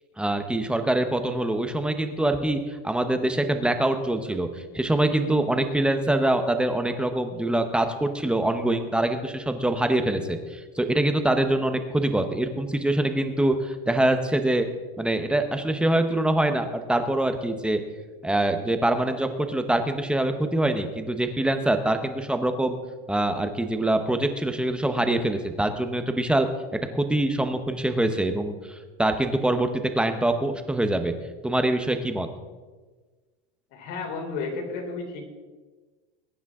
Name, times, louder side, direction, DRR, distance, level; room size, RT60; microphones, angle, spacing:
voice 1, 0.2-14.7 15.0-17.8 18.2-22.8 23.1-26.5 26.9-31.1 31.4-32.3, right 1 dB, 5° right, 7 dB, 0.8 m, -24 dB
voice 2, 33.7-35.3, left 4 dB, 60° left, 2 dB, 3.7 m, -32 dB
21.0 x 10.0 x 3.7 m, 1.3 s
supercardioid pair, 160°, 29 cm